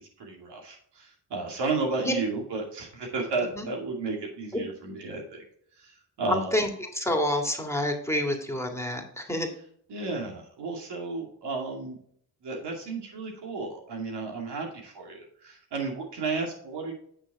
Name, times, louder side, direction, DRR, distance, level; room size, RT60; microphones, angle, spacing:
voice 1, 0.2-5.4 5.8-6.6 9.9-12.0 12.4-16.9, right 3 dB, 90° right, 1 dB, 2.5 m, -33 dB
voice 2, 6.3-6.7 6.9-9.5, left 1 dB, 5° left, 2 dB, 2.0 m, -28 dB
9.0 x 6.1 x 3.6 m, 0.64 s
cardioid pair, 80°, 40 cm